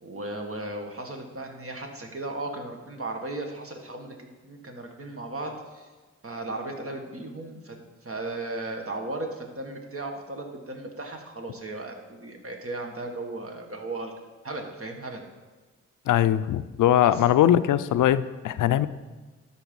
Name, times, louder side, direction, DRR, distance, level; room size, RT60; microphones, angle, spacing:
voice 1, 0.0-5.9 6.2-14.1 14.4-15.2 17.0-17.2, right 2 dB, 45° right, 2 dB, 1.8 m, -36 dB
voice 2, 16.1-18.9, left 11 dB, 85° left, 14 dB, 0.5 m, -21 dB
12.0 x 4.4 x 5.4 m, 1.3 s
cardioid pair, 50°, 30 cm